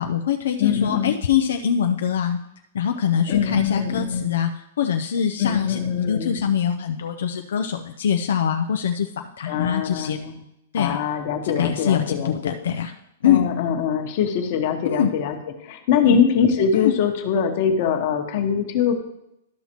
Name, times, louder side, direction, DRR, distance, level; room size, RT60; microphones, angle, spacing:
voice 1, 0.0-2.4 2.7-5.8 6.1-10.2 10.7-11.0 11.4-12.9 13.2-13.5 14.8-15.1 16.0-16.2 16.7-16.9, left 8 dB, 75° left, 5 dB, 0.5 m, -23 dB
voice 2, 0.6-1.2 3.3-4.3 5.4-6.5 9.5-10.4 10.7-12.6 13.2-18.9, left 7 dB, 40° left, 3 dB, 1.2 m, -23 dB
12.5 x 5.7 x 3.0 m, 0.83 s
hypercardioid pair, 165°, 0 cm